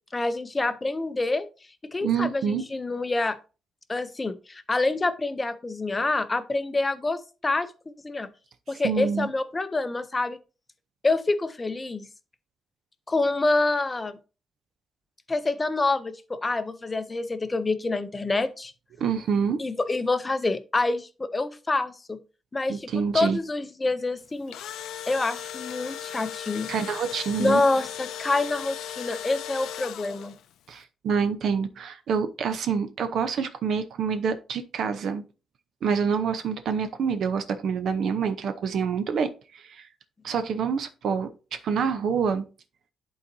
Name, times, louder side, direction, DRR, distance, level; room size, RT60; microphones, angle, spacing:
voice 1, 0.1-1.5 1.8-3.4 3.9-7.7 8.0-8.3 8.7-10.4 11.0-12.1 13.1-14.2 15.3-18.7 19.6-22.2 22.5-22.9 23.1-24.5 25.1-26.7 27.4-30.3, left 2 dB, 20° left, 0.5 m, -27 dB
voice 2, 2.0-2.6 8.8-9.3 19.0-19.6 22.7-23.4 26.7-27.6 30.7-35.2 35.8-39.9 40.2-42.4, right 6 dB, 60° right, 0.6 m, -27 dB
Engine / Drill, 24.3-30.5, left 10 dB, 90° left, 0.5 m, -37 dB
11.5 x 3.9 x 2.7 m
cardioid pair, 155°, 0 cm